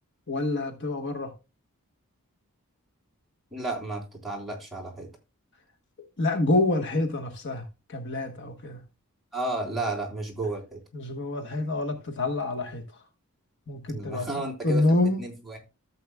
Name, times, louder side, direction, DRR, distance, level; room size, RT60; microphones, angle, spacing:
voice 1, 0.3-1.3 6.2-7.6 7.9-8.8 10.9-12.8 13.7-14.3 14.6-15.2, left 2 dB, 55° left, 1.3 m, -27 dB
voice 2, 3.5-5.1 9.3-10.8 13.9-14.8 15.2-15.6, right 2 dB, ahead, 3.4 m, -32 dB
14.0 x 7.7 x 2.2 m
head